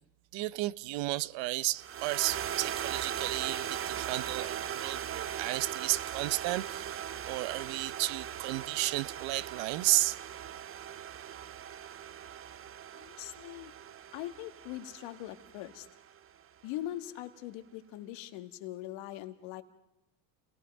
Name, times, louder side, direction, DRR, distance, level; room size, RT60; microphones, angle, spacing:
voice 1, 0.3-10.2, right 19 dB, 60° right, 0.8 m, -33 dB
sound 1, 1.8-16.2, right 9 dB, 25° right, 0.7 m, -39 dB
voice 2, 12.9-13.7 14.1-15.9 16.6-19.6, left 14 dB, 65° left, 1.8 m, -41 dB
29.5 x 19.0 x 5.3 m
supercardioid pair, 100°, 49 cm